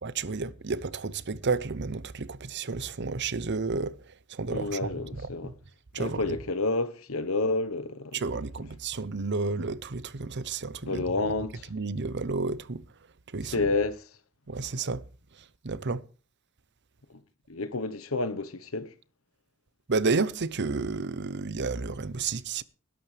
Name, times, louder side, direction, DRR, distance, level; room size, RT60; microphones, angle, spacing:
voice 1, 0.0-5.5 5.9-6.4 8.1-11.0 11.7-12.8 13.3-13.6 14.5-15.0 15.6-16.0 19.9-22.6, right 4 dB, 55° right, 0.8 m, -31 dB
voice 2, 4.5-5.5 6.0-8.2 10.8-11.7 13.5-14.0 17.1-17.2 17.5-18.9, left 3 dB, 70° left, 1.2 m, -30 dB
19.5 x 11.5 x 3.4 m
head